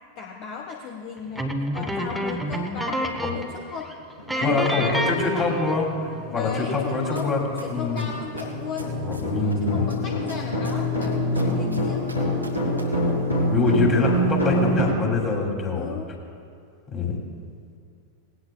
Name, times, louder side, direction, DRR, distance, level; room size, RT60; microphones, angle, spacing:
voice 1, 0.2-3.9 4.3-5.5 6.3-9.0 9.4-12.3 15.7-16.1, left 6 dB, 40° left, 1 dB, 1.1 m, -36 dB
sound 1, 1.3-3.6 3.8-3.9 4.3-5.9, equal, ahead, 1.2 m, -28 dB
sound 2, 4.2-4.3 4.8-5.0 5.4-14.8, equal, 85° left, 4.1 m, -26 dB
voice 2, 4.4-5.9 6.3-7.4 7.7-8.1 9.0-9.8 13.5-16.0 16.9-17.2, left 4 dB, 25° left, -1 dB, 2.8 m, -24 dB
sound 3, 7.2-7.3 7.6-9.5 9.9-12.8 13.1-13.2, right 2 dB, 90° right, 1.8 m, -40 dB
19.5 x 17.0 x 2.3 m, 2.4 s
figure-of-eight pair, 90°, 0 cm